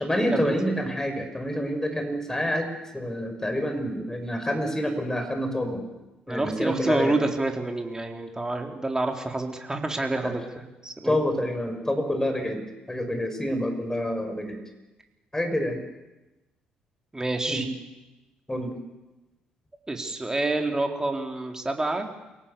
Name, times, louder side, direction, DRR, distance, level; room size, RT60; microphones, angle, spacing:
voice 1, 0.0-2.7 2.9-5.8 6.3-7.1 10.2-10.3 11.0-14.6 15.3-15.8 17.5-17.7 18.5-18.7, equal, 10° left, 6 dB, 6.5 m, -27 dB
voice 2, 6.3-11.2 17.1-17.6 19.9-22.1, right 2 dB, 15° right, 3 dB, 4.0 m, -28 dB
28.0 x 18.5 x 7.1 m, 1.0 s
figure-of-eight pair, 45°, 4 cm